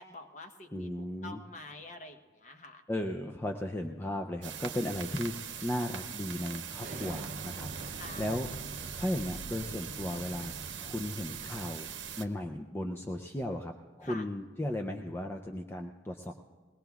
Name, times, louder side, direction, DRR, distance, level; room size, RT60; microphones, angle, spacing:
voice 1, 0.0-2.8 8.0-8.3 14.0-14.3, left 2 dB, 40° left, 5 dB, 0.9 m, -47 dB
voice 2, 0.7-1.4 2.9-8.5 9.0-10.5 10.8-11.9 12.2-16.3, left 1 dB, 10° left, 3 dB, 0.4 m, -36 dB
sound 1, 4.4-12.2, right 9 dB, 80° right, 0.8 m, -42 dB
Explosion, 6.8-12.3, right 2 dB, 45° right, 0.6 m, -45 dB
21.5 x 18.5 x 2.3 m, 1.5 s
head